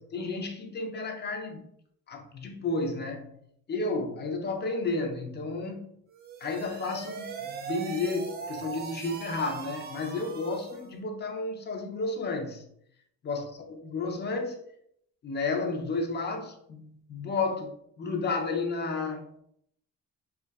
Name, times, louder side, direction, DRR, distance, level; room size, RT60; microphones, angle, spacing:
voice 1, 0.0-1.7 2.1-3.3 3.7-5.9 6.4-12.6 13.2-13.4 13.7-14.6 15.2-19.2, left 3 dB, 35° left, 0.5 m, -32 dB
sound 1, 6.1-10.9, right 5 dB, 35° right, 0.4 m, -40 dB
2.5 x 2.2 x 2.2 m
cardioid pair, 90°, 30 cm